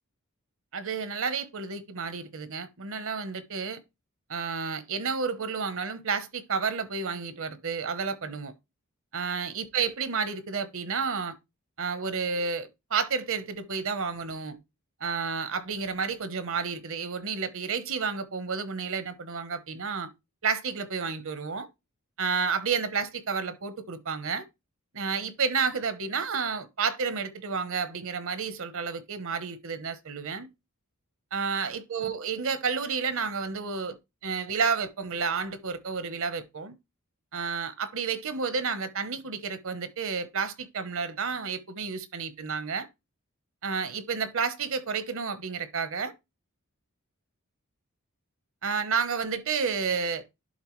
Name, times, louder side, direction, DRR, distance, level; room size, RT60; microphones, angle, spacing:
voice 1, 0.7-3.8 4.3-8.5 9.1-11.3 11.8-14.6 15.0-20.1 20.4-21.7 22.2-24.4 24.9-30.5 31.3-34.0 34.2-36.7 37.3-42.9 43.6-46.1 48.6-50.2, right 5 dB, 65° right, 0.9 m, -31 dB
11.5 x 3.8 x 3.1 m
head